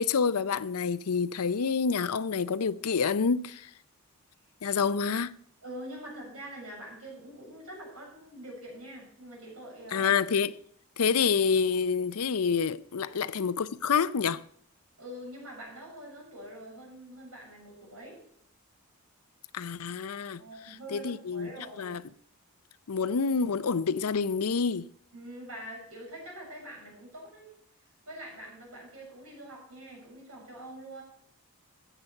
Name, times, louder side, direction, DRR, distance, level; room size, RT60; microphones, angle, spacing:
voice 1, 0.0-3.7 4.6-5.3 9.9-10.6 11.0-14.4 19.5-22.0 22.9-24.9, left 5 dB, 80° left, 0.6 m, -28 dB
voice 2, 5.6-10.1 13.0-13.2 15.0-18.2 20.4-22.0 25.1-27.5 28.1-31.0, right 1 dB, 75° right, 6.8 m, -44 dB
14.0 x 8.1 x 5.6 m
head